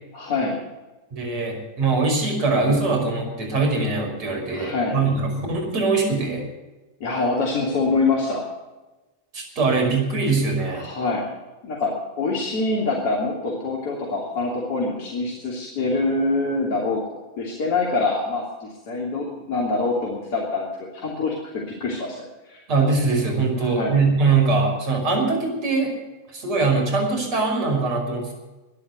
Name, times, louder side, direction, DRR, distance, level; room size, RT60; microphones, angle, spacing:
voice 1, 0.1-0.6 4.5-5.0 7.0-8.5 10.8-11.3 11.6-20.7 20.9-22.6 23.5-24.0, left 3 dB, 50° left, -2 dB, 2.9 m, -25 dB
voice 2, 1.1-6.5 9.3-10.8 22.7-26.0 26.3-28.3, right 3 dB, 40° right, 2 dB, 5.2 m, -22 dB
12.5 x 10.5 x 9.3 m, 1.1 s
figure-of-eight pair, 90°, 0 cm